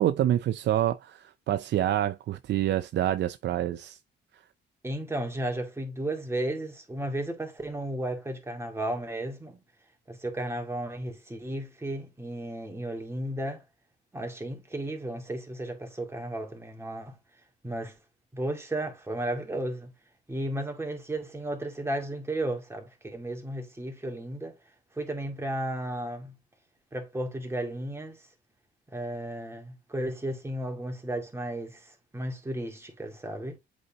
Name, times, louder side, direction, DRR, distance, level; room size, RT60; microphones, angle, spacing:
voice 1, 0.0-4.0, right 12 dB, 60° right, 0.4 m, -27 dB
voice 2, 4.8-9.6 10.1-13.6 14.1-17.2 17.6-18.0 18.3-19.9 20.3-24.6 25.0-26.3 26.9-28.2 28.9-33.6, right 1 dB, 15° right, 2.1 m, -34 dB
8.2 x 4.1 x 2.8 m
cardioid pair, 90°, 20 cm